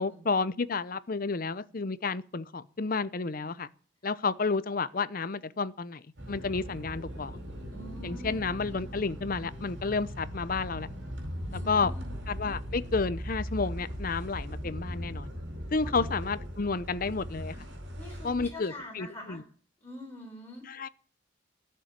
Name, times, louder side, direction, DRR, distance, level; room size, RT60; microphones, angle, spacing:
voice 1, 0.0-3.7 4.0-7.4 8.0-10.9 11.5-11.9 12.3-15.3 15.7-17.6 18.2-19.4 20.7-20.9, left 4 dB, 45° left, 0.6 m, -31 dB
sound 1, 6.2-18.5, equal, 65° right, 4.5 m, -39 dB
voice 2, 7.7-8.8 11.5-12.1 15.8-16.0 17.9-19.4 19.8-20.7, left 1 dB, 10° left, 4.0 m, -45 dB
13.0 x 6.8 x 9.1 m
head